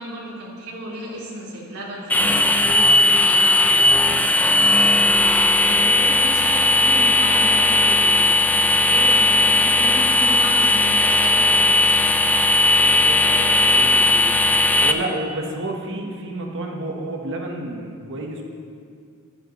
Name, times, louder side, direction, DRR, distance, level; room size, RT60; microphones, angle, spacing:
voice 1, 0.0-12.2, right 1 dB, 80° right, -5 dB, 3.3 m, -34 dB
sound 1, 2.1-14.9, left 2 dB, 5° left, 0.4 m, -17 dB
voice 2, 12.8-18.4, right 2 dB, 60° right, 1 dB, 1.2 m, -31 dB
15.0 x 10.5 x 3.1 m, 2.2 s
head